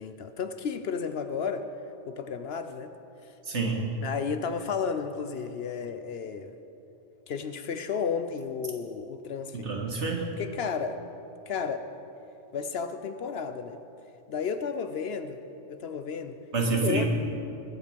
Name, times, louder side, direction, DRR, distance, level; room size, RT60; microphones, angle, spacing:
voice 1, 0.0-1.7 2.1-2.9 3.2-3.3 4.0-6.5 7.3-9.7 10.4-11.0 11.5-11.8 12.5-13.8 14.3-15.4 15.7-16.4 16.7-17.1, left 6 dB, 60° left, 9 dB, 0.8 m, -32 dB
voice 2, 3.4-3.9 9.5-10.4 16.5-17.0, right 4 dB, 65° right, 1 dB, 2.0 m, -28 dB
21.0 x 8.3 x 5.2 m, 3.0 s
omnidirectional pair, 1.3 m